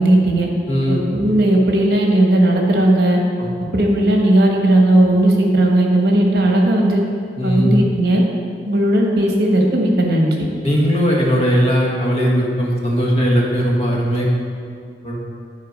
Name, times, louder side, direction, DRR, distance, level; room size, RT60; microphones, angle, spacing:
voice 1, 0.0-0.5 0.9-3.2 3.7-7.0 7.4-8.2 8.6-10.4, right 1 dB, 60° right, 0 dB, 1.2 m, -15 dB
voice 2, 0.7-1.0 3.4-3.5 7.4-7.7 10.6-14.3 15.0-15.2, equal, 35° left, -3 dB, 1.4 m, -18 dB
10.5 x 4.3 x 5.3 m, 2.3 s
head